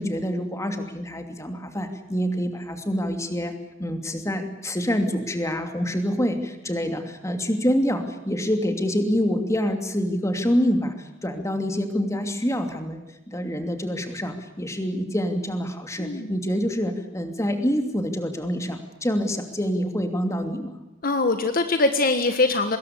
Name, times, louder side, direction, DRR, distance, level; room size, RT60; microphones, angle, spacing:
voice 1, 0.0-3.5 3.8-13.0 13.3-20.8, equal, 15° left, 6 dB, 2.8 m, -26 dB
voice 2, 16.0-16.3 21.0-22.8, left 3 dB, 45° left, 8 dB, 1.5 m, -22 dB
25.0 x 21.0 x 8.5 m, 0.95 s
head